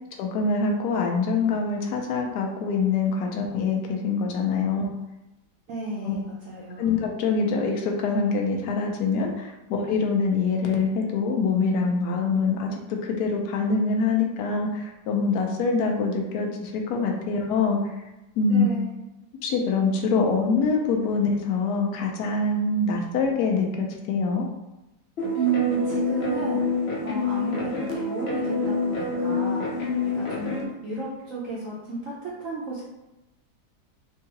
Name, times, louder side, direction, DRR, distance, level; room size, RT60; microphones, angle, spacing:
voice 1, 0.2-4.8 6.0-6.1 6.8-17.8 18.4-18.7 19.4-24.5, left 4 dB, 75° left, 1 dB, 1.0 m, -24 dB
voice 2, 5.7-7.0 18.5-19.0 25.3-26.7 27.0-29.9 30.1-32.8, right 5 dB, 65° right, -6 dB, 0.8 m, -32 dB
sound 1, 25.2-30.6, left 3 dB, 90° left, 0.5 m, -27 dB
3.7 x 2.3 x 2.8 m, 0.96 s
omnidirectional pair, 1.8 m